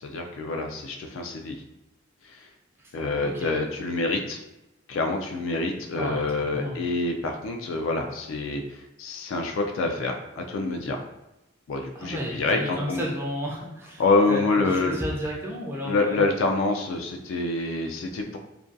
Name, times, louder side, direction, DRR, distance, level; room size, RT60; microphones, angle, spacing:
voice 1, 0.0-1.6 2.3-2.5 2.9-4.4 4.9-11.0 11.7-13.0 14.0-15.0 15.8-18.4, left 3 dB, 90° left, 3 dB, 0.3 m, -26 dB
voice 2, 11.9-14.0 14.3-16.3, equal, 10° right, -3 dB, 0.3 m, -32 dB
2.5 x 2.2 x 2.4 m, 0.93 s
head